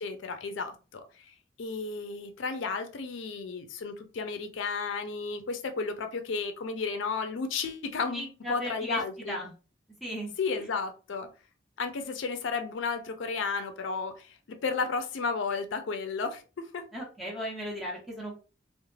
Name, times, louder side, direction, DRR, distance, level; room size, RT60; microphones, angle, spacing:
voice 1, 0.0-9.4 10.4-11.3 11.8-16.9, left 4 dB, 85° left, 0.4 m, -33 dB
voice 2, 8.1-9.0 9.3-9.5 10.0-10.3 10.6-10.7 16.9-18.3, equal, ahead, 1.0 m, -36 dB
2.3 x 2.1 x 3.1 m
head